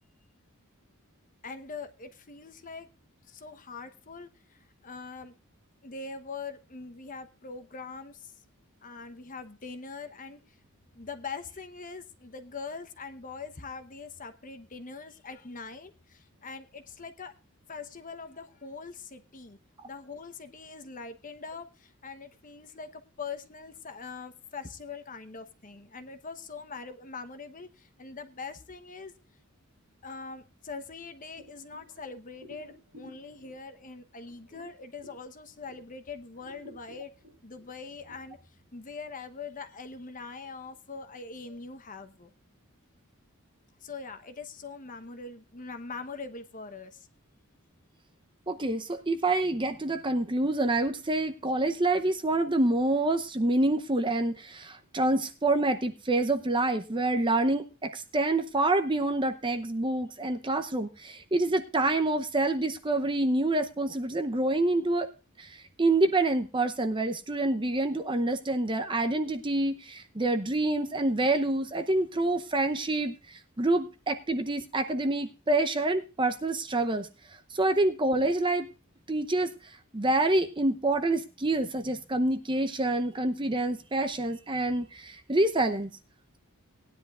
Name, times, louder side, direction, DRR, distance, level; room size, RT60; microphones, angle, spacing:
voice 1, 1.4-2.9 3.2-5.3 5.8-8.3 8.8-10.6 10.9-17.3 17.7-19.6 19.8-29.1 30.0-37.1 37.4-38.4 38.7-42.3 43.8-47.1, left 4 dB, 35° left, 9 dB, 1.0 m, -42 dB
sound 1, 31.3-36.0 36.3-38.1, equal, 85° right, 3.6 m, -54 dB
voice 2, 48.5-65.1 65.4-77.1 77.5-78.7 79.1-79.5 79.9-85.9, right 2 dB, 20° right, 8 dB, 0.8 m, -27 dB
19.0 x 10.5 x 2.5 m, 0.29 s
head